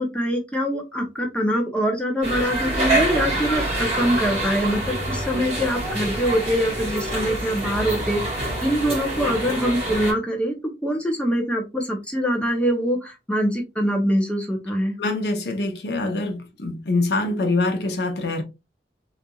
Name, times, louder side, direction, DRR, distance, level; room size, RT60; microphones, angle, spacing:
voice 1, 0.0-10.5 10.8-14.9, equal, 5° left, 0.5 m, -24 dB
sound 1, 2.2-10.1, right 1 dB, 35° right, 1.4 m, -26 dB
voice 2, 15.0-18.4, left 2 dB, 70° left, 0.6 m, -24 dB
2.9 x 2.4 x 2.2 m
head